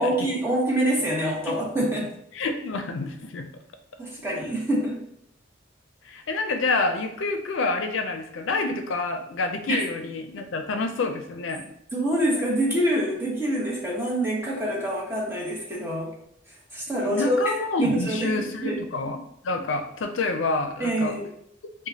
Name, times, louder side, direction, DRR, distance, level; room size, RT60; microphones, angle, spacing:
voice 1, 0.0-2.1 4.0-5.0 9.7-9.8 11.9-16.1 16.7-17.4 17.8-18.3 18.6-18.8 20.8-21.3, right 1 dB, 15° right, -4 dB, 0.9 m, -25 dB
voice 2, 2.3-3.5 6.1-11.7 17.0-21.2, left 3 dB, 85° left, 5 dB, 0.5 m, -28 dB
4.9 x 2.1 x 2.7 m, 0.72 s
head